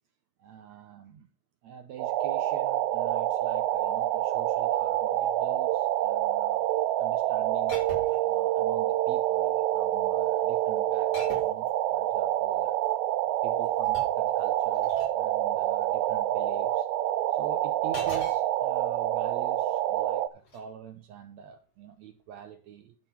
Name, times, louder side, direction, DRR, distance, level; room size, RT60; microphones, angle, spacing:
voice 1, 0.4-1.3 1.6-6.7 6.9-7.8 8.2-12.8 13.4-16.9 17.3-23.0, right 8 dB, 65° right, 2.0 m, -45 dB
sound 1, 2.0-20.3, right 13 dB, 90° right, 2.4 m, -27 dB
sound 2, 7.7-8.3 9.3-9.7 11.1-11.7 13.4-15.2 17.9-18.4 20.4-20.6, left 3 dB, 80° left, 5.9 m, -44 dB
11.0 x 5.3 x 7.2 m
omnidirectional pair, 3.8 m